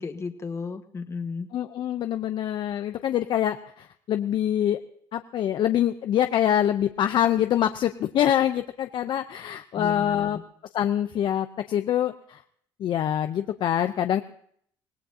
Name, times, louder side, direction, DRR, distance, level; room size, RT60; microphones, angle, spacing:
voice 1, 0.0-1.5 9.7-10.4, left 5 dB, 30° left, 6 dB, 1.4 m, -34 dB
voice 2, 1.5-4.8 5.1-10.4 10.7-12.4 12.8-14.2, left 10 dB, 55° left, 8 dB, 0.7 m, -25 dB
24.5 x 17.5 x 2.8 m, 0.65 s
cardioid pair, 100°, 9 cm